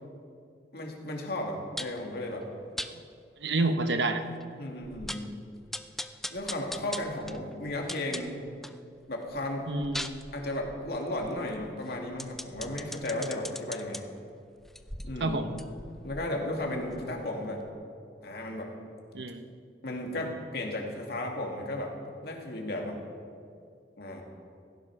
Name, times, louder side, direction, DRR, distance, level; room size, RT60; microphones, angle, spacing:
voice 1, 0.7-2.5 4.6-5.3 6.3-8.3 9.1-9.7 10.3-14.0 15.0-15.4 16.0-17.6 18.2-18.7 19.8-21.9 22.2-23.0 24.0-24.2, left 1 dB, 60° left, 0 dB, 2.5 m, -34 dB
sound 1, 1.8-2.1 2.8-2.9 3.5-3.6 3.9-4.0 4.4-4.5 4.8-5.3 5.7-8.8 9.2-14.0 14.6-17.3 17.6-17.7, left 1 dB, ahead, 0.4 m, -41 dB
voice 2, 3.4-4.2 9.7-10.1 15.2-15.5 19.1-19.4, right 2 dB, 80° right, 8 dB, 1.1 m, -28 dB
16.5 x 16.0 x 4.8 m, 2.3 s
head